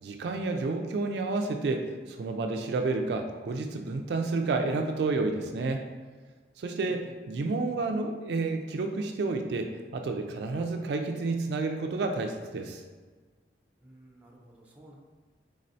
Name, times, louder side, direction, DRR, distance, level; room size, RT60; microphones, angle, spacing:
voice 1, 0.0-5.8 6.6-12.8, right 3 dB, 65° right, 5 dB, 0.3 m, -30 dB
voice 2, 6.8-7.2 13.8-15.0, right 1 dB, 10° right, -2 dB, 0.5 m, -54 dB
4.2 x 3.8 x 2.6 m, 1.4 s
head